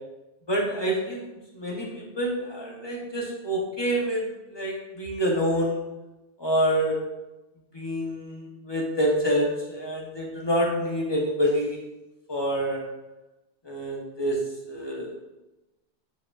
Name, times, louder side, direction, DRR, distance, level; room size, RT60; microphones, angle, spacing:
voice 1, 0.5-1.3 1.5-4.2 4.5-5.8 6.4-6.9 7.7-11.8 12.3-12.8 13.6-15.1, equal, 30° left, -2 dB, 0.5 m, -27 dB
7.1 x 2.4 x 2.3 m, 1.0 s
omnidirectional pair, 1.1 m